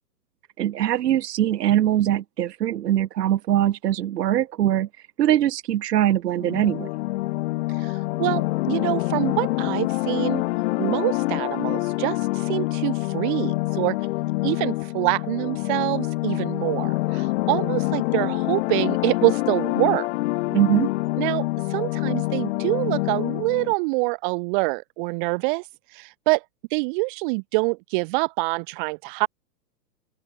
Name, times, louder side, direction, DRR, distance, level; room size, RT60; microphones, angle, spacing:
voice 1, 0.6-4.9 5.2-6.9 20.5-20.9, right 12 dB, 70° right, 1.5 m, -22 dB
sound 1, 6.4-23.7, left 20 dB, 40° left, 1.6 m, -26 dB
voice 2, 7.7-10.4 10.8-14.1 14.4-20.1 21.2-26.4 26.7-29.3, right 30 dB, 30° right, 1.0 m, -26 dB
open air
hypercardioid pair, 140°, 49 cm